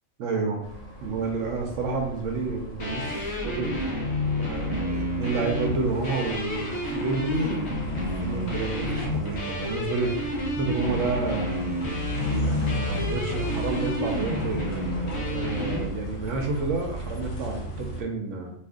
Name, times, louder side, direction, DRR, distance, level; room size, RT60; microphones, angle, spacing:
voice 1, 0.2-0.6 1.0-3.7 4.4-10.3 10.6-11.6 12.4-18.5, right 4 dB, 70° right, 2 dB, 0.9 m, -30 dB
sound 1, 0.6-18.0, equal, 80° left, 1.3 m, -35 dB
sound 2, 2.8-15.9, left 1 dB, 60° left, 1.1 m, -30 dB
2.8 x 2.4 x 3.6 m, 0.69 s
omnidirectional pair, 1.4 m